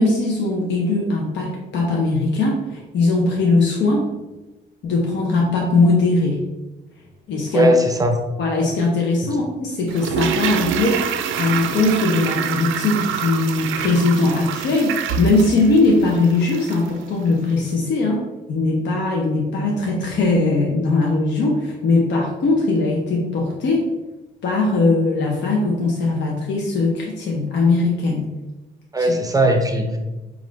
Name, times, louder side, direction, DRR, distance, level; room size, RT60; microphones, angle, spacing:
voice 1, 0.0-4.1 4.8-6.5 7.3-7.7 8.4-18.2 18.5-23.8 24.4-28.3 29.0-29.1, left 3 dB, 65° left, -1 dB, 0.7 m, -20 dB
voice 2, 7.5-8.2 9.2-9.4 28.9-30.0, right 1 dB, 20° right, 4 dB, 0.6 m, -18 dB
Toilet flush, 9.9-17.0 17.2-17.3, right 8 dB, 80° right, 0.4 m, -26 dB
4.9 x 2.5 x 3.2 m, 1.1 s
cardioid pair, 90°, 20 cm